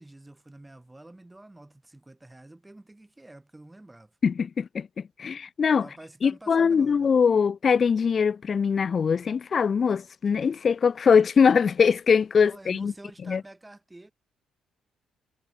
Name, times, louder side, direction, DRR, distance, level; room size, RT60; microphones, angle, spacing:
voice 1, 0.0-4.2 5.8-7.1 12.4-14.1, right 2 dB, 10° right, 7.4 m, -48 dB
voice 2, 4.2-5.8 6.2-12.9 13.3-13.4, left 6 dB, 45° left, 0.9 m, -22 dB
cardioid pair, 90°, 0 cm